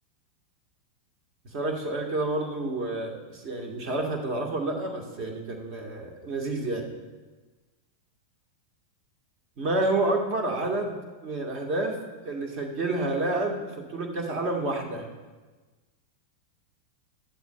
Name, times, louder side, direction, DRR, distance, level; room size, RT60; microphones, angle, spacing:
voice 1, 1.5-6.9 9.6-15.0, right 2 dB, 40° right, 2 dB, 1.7 m, -29 dB
13.0 x 11.0 x 2.4 m, 1.3 s
figure-of-eight pair, 90°, 0 cm